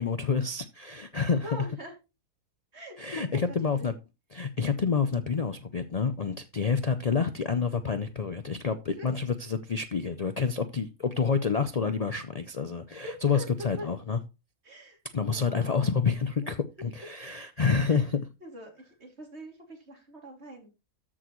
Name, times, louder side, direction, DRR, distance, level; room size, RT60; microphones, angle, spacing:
voice 1, 0.0-1.5 3.0-3.9 4.3-14.2 15.1-18.2, left 5 dB, 75° left, 0.3 m, -28 dB
voice 2, 1.3-1.9 2.7-3.4 3.8-3.9 9.0-9.1 13.0-13.9 14.6-15.0 15.3-16.0 16.4-16.5 17.9-18.0 18.4-20.7, equal, 45° right, 3.0 m, -43 dB
13.5 x 6.3 x 3.1 m
omnidirectional pair, 1.6 m